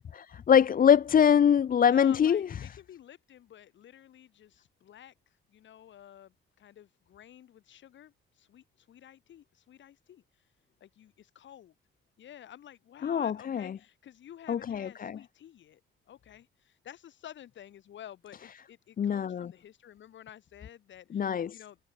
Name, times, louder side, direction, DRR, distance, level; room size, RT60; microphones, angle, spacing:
voice 1, 0.1-2.5 13.0-13.8 14.5-15.2 19.0-19.5 21.1-21.6, left 8 dB, 45° left, 0.8 m, -24 dB
voice 2, 1.8-10.2 10.8-11.7 12.2-15.8 16.1-21.8, left 10 dB, 70° left, 6.3 m, -51 dB
cardioid pair, 90°, 20 cm